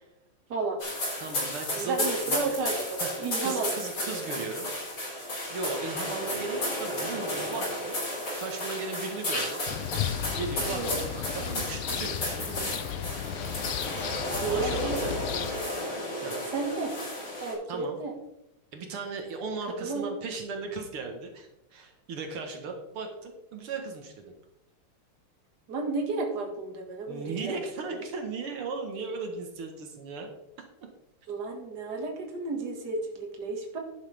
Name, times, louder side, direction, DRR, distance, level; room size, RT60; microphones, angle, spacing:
sound 1, 0.8-17.5, left 1 dB, 65° left, 5.8 m, -33 dB
voice 1, 1.2-2.5 3.0-3.1 3.4-5.0 5.5-8.0 8.4-9.6 10.3-12.9 14.5-15.2 16.2-16.4 17.7-18.0 18.7-24.3 27.1-30.3, right 4 dB, 80° right, 4 dB, 2.3 m, -37 dB
voice 2, 1.8-4.4 10.7-11.0 14.4-15.1 16.5-17.0 17.4-18.1 19.8-20.1 25.7-28.0 31.3-33.8, right 3 dB, 50° right, 2 dB, 2.4 m, -32 dB
sound 2, 9.7-15.5, left 10 dB, 85° left, 1.6 m, -34 dB
11.0 x 11.0 x 3.4 m, 0.87 s
omnidirectional pair, 2.4 m